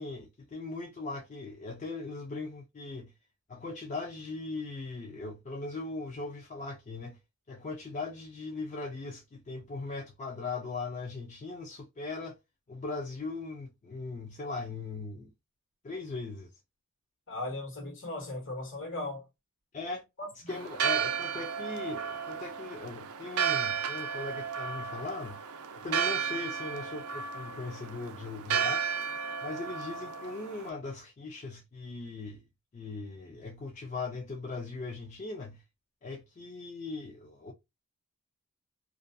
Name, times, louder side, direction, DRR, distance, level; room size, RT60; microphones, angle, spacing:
voice 1, 0.0-3.1 3.5-7.2 7.5-12.4 12.7-15.3 15.8-16.5 19.7-20.0 20.5-25.4 25.8-28.8 29.4-32.4 32.7-35.6 36.0-37.5, left 3 dB, 35° left, 0.4 m, -39 dB
voice 2, 17.3-19.2 20.2-20.3, left 2 dB, 60° left, 1.1 m, -37 dB
Church bell, 20.5-30.7, right 7 dB, 80° right, 0.4 m, -33 dB
2.4 x 2.2 x 2.5 m
head